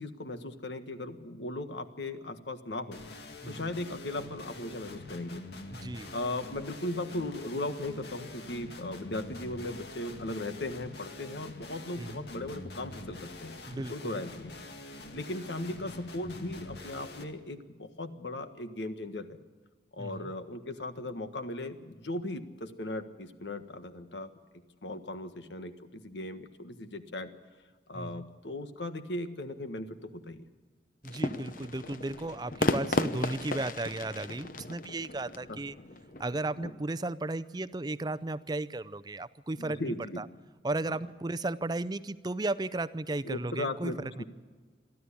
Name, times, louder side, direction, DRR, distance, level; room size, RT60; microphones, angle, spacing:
voice 1, 0.0-3.0 3.4-5.4 6.1-14.6 15.1-19.4 19.9-24.3 24.8-27.3 27.9-30.4 35.5-35.6 39.6-40.2 40.9-41.0 43.2-44.2, left 1 dB, 90° left, 8 dB, 1.5 m, -37 dB
sound 1, 2.9-17.2, left 2 dB, 70° left, 2.0 m, -45 dB
voice 2, 5.7-6.2 12.0-12.2 13.7-14.2 20.0-20.3 27.9-28.3 31.0-35.8 36.2-40.3 40.6-44.2, right 2 dB, 25° right, 15 dB, 0.5 m, -35 dB
sound 2, 31.0-36.7, left 2 dB, 50° left, 0.9 m, -34 dB
23.5 x 14.0 x 8.5 m, 1.5 s
head